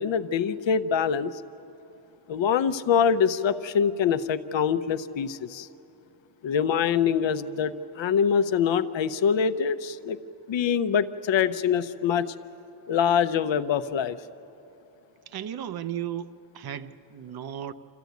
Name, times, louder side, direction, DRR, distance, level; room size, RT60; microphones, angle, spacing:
voice 1, 0.0-1.4 2.3-5.7 6.4-10.2 10.5-12.3 12.9-14.2, left 7 dB, 65° left, 12 dB, 0.7 m, -24 dB
voice 2, 15.3-17.7, right 10 dB, 50° right, 12 dB, 0.7 m, -35 dB
26.5 x 14.5 x 9.3 m, 3.0 s
wide cardioid pair, 135°, 49 cm